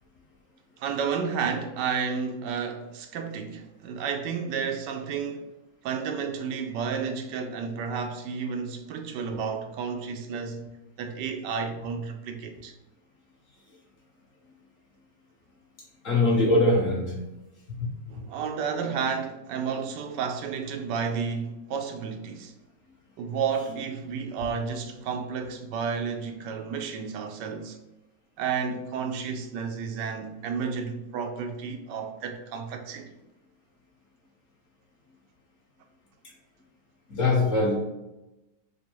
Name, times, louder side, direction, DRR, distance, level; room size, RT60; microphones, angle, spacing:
voice 1, 0.8-5.5 5.8-10.7 11.0-12.7 18.1-22.5 23.2-27.8 28.4-33.1, right 6 dB, 80° right, 1.2 m, -31 dB
voice 2, 16.0-17.2 17.7-18.2 36.2-36.3 37.1-37.7, left 2 dB, 50° left, 1.6 m, -23 dB
6.7 x 2.4 x 3.0 m
omnidirectional pair, 1.9 m